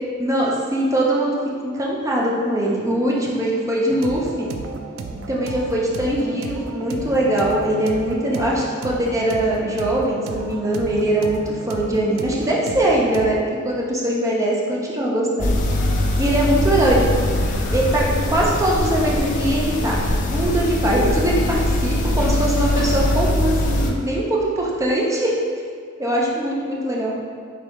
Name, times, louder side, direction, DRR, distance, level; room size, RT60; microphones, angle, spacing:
voice 1, 0.2-1.4 1.6-4.5 5.3-15.5 16.2-17.0 17.7-20.0 20.3-25.3 26.0-27.1, right 1 dB, 15° right, -4 dB, 0.6 m, -21 dB
sound 1, 3.9-13.3, right 3 dB, 85° right, 0.4 m, -33 dB
sound 2, 15.4-23.9, left 1 dB, 40° left, 0.4 m, -22 dB
4.9 x 3.3 x 3.0 m, 2.1 s
head